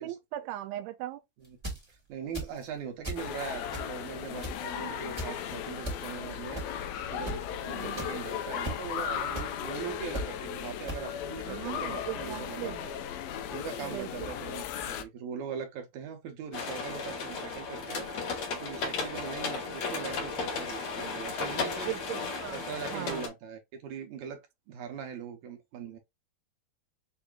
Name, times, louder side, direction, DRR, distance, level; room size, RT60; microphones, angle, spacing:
voice 1, 0.0-1.2 4.8-5.0 7.7-8.2 11.5-12.8 13.8-14.3 21.8-22.6 22.9-23.3, right 14 dB, 85° right, 2.5 m, -39 dB
sound 1, 1.4-1.8 2.3-2.7 3.0-3.3 3.7-4.1 4.4-4.7 5.2-5.3 5.8-6.0 6.5-6.8 7.3-7.4 8.0-8.1 8.6-8.8 9.3-9.5 10.1-10.3 10.9-11.0, right 1 dB, 15° right, 1.0 m, -35 dB
voice 2, 1.9-13.0 13.5-21.9 22.5-26.0, right 7 dB, 70° right, 1.9 m, -41 dB
sound 2, 3.2-15.0, left 9 dB, 80° left, 2.3 m, -36 dB
sound 3, 16.5-23.3, left 4 dB, 55° left, 2.1 m, -35 dB
6.9 x 2.8 x 2.3 m
omnidirectional pair, 4.4 m